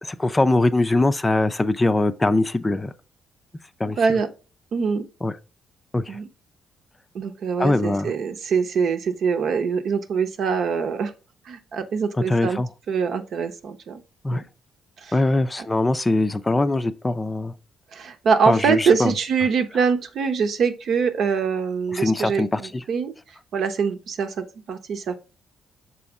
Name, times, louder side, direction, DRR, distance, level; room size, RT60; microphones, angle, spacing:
voice 1, 0.0-2.9 3.8-4.0 5.2-5.3 5.9-6.2 7.6-8.1 12.3-12.7 14.2-14.4 15.1-17.5 18.5-19.1 21.9-22.8, left 2 dB, 20° left, 0.5 m, -22 dB
voice 2, 4.0-4.3 4.7-5.0 6.1-6.3 7.1-11.1 11.5-12.6 12.9-14.0 14.3-14.4 15.0-15.2 15.6-15.7 17.9-23.1 23.5-25.2, right 5 dB, 65° right, 0.8 m, -24 dB
6.2 x 4.2 x 3.6 m
cardioid pair, 90°, 0 cm